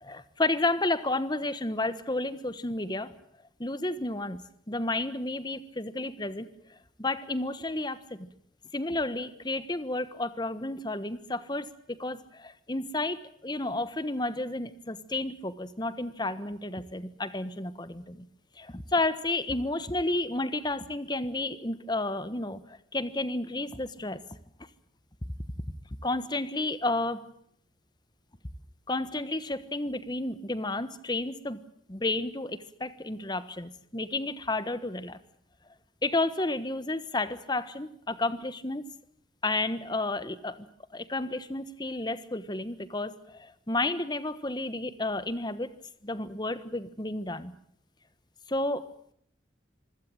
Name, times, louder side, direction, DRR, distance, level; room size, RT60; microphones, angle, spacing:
voice 1, 0.0-3.1 3.6-8.3 8.7-18.3 18.6-24.2 26.0-27.2 28.9-31.6 31.9-35.2 36.0-38.9 39.4-40.6 40.9-45.7 46.0-47.5 48.5-48.9, left 2 dB, 20° left, 14 dB, 1.3 m, -31 dB
26.0 x 16.5 x 8.9 m, 0.69 s
head